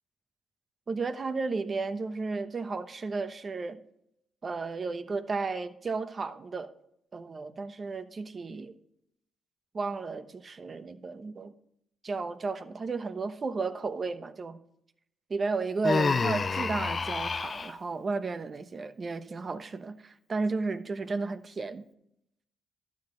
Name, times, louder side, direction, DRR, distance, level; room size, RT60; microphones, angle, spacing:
voice 1, 0.9-3.8 4.4-6.7 7.1-8.7 9.7-11.5 12.0-14.6 15.3-21.8, right 4 dB, 40° right, 0.9 m, -33 dB
Human voice, 15.8-17.7, left 4 dB, 40° left, 0.4 m, -28 dB
12.0 x 7.6 x 3.9 m
cardioid pair, 75°, 0 cm